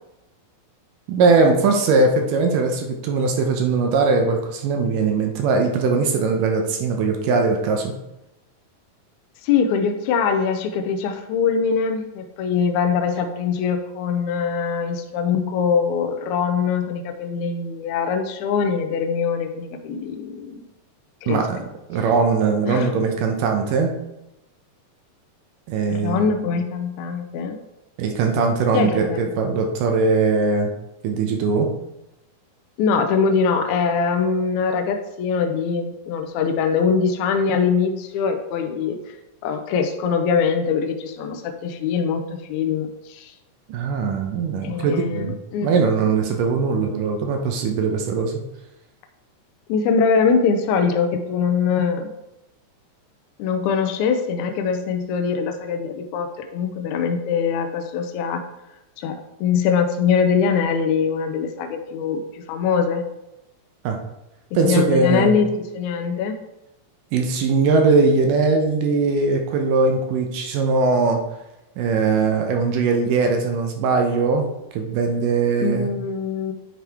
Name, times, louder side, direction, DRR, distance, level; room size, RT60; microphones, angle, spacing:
voice 1, 1.1-7.9 21.3-21.6 21.9-23.9 25.7-26.3 28.0-30.7 31.0-31.7 43.7-48.4 63.8-64.0 64.5-65.4 67.1-71.2 71.8-74.5 74.7-75.9, right 4 dB, 75° right, 3 dB, 2.2 m, -20 dB
voice 2, 9.4-20.6 21.2-21.4 22.7-22.9 25.9-27.6 28.7-29.3 32.8-39.2 39.4-43.3 44.6-45.9 49.7-52.1 53.4-58.4 59.0-63.0 64.5-66.4 75.6-76.5, left 6 dB, 85° left, 5 dB, 1.7 m, -22 dB
9.1 x 4.8 x 3.4 m, 0.92 s
omnidirectional pair, 4.0 m